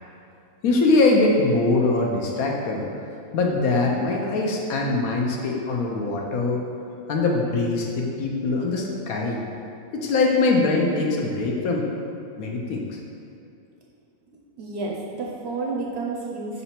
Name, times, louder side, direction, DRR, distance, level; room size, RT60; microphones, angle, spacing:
voice 1, 0.6-6.6 7.1-9.4 9.9-11.8 12.4-13.0, left 3 dB, 80° left, 0 dB, 1.2 m, -22 dB
voice 2, 14.6-16.6, right 3 dB, 60° right, -2 dB, 0.7 m, -30 dB
5.5 x 4.0 x 4.4 m, 2.6 s
omnidirectional pair, 1.5 m